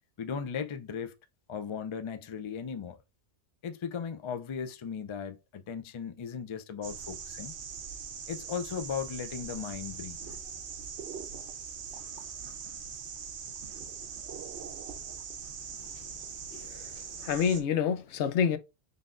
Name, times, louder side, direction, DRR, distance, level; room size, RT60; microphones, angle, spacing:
voice 1, 0.2-1.1 1.5-3.0 3.6-7.6 8.3-10.2, left 7 dB, 50° left, 0.3 m, -37 dB
sound 1, 6.8-17.6, right 7 dB, 75° right, 1.0 m, -41 dB
voice 2, 16.5-18.6, left 7 dB, 85° left, 0.9 m, -29 dB
3.9 x 3.4 x 2.4 m
omnidirectional pair, 1.2 m